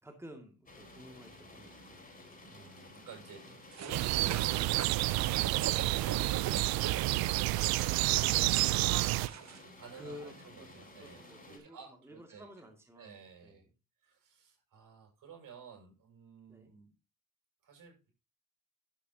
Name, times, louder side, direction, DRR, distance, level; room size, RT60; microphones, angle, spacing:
voice 1, 0.0-1.8 3.4-3.5 4.1-4.3 5.6-5.9 9.9-13.7 16.5-16.7, equal, 5° right, 3 dB, 2.4 m, -52 dB
sound 1, 0.7-11.6, left 1 dB, 25° left, 5.4 m, -54 dB
voice 2, 2.4-7.6 8.0-8.4 9.6-12.5 13.0-13.6 14.0-16.9 17.6-18.1, right 6 dB, 65° right, 1 dB, 6.9 m, -53 dB
sound 2, 3.7-9.6, right 10 dB, 50° right, 0.8 m, -43 dB
sound 3, 3.9-9.3, right 18 dB, 90° right, 0.6 m, -29 dB
12.0 x 8.5 x 2.9 m, 0.27 s
cardioid pair, 80°, 35 cm